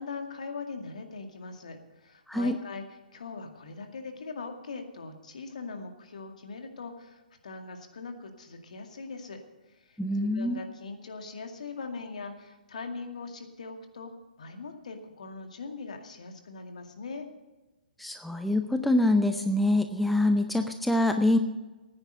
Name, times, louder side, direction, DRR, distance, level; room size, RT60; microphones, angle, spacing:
voice 1, 0.0-2.8 3.1-9.4 9.7-14.1 14.4-17.3, left 4 dB, 55° left, 5 dB, 2.2 m, -41 dB
voice 2, 10.0-10.6 18.0-21.4, left 1 dB, ahead, 7 dB, 0.5 m, -25 dB
16.5 x 9.8 x 6.6 m, 1.1 s
figure-of-eight pair, 125°, 5 cm